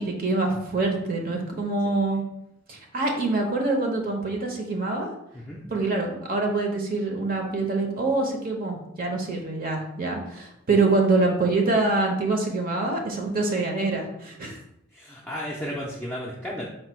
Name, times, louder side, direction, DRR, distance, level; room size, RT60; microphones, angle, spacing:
voice 1, 0.0-2.2 2.7-5.1 5.7-14.6, right 3 dB, 45° right, 2 dB, 0.7 m, -25 dB
voice 2, 14.9-16.7, equal, 5° left, -5 dB, 0.4 m, -33 dB
4.5 x 2.2 x 4.3 m, 0.79 s
head